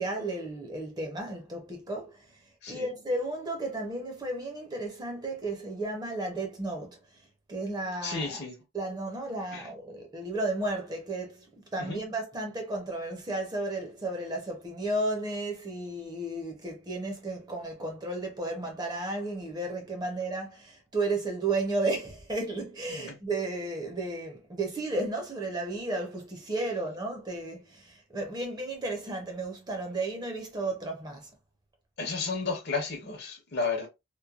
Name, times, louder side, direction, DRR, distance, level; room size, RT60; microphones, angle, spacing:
voice 1, 0.0-2.3 2.7-7.0 7.5-8.4 8.7-31.3, right 2 dB, 20° right, 0.7 m, -33 dB
voice 2, 8.0-8.5 9.5-9.7 11.8-12.0 22.9-23.1 32.0-33.9, left 4 dB, 55° left, 0.8 m, -32 dB
3.0 x 2.1 x 2.3 m
head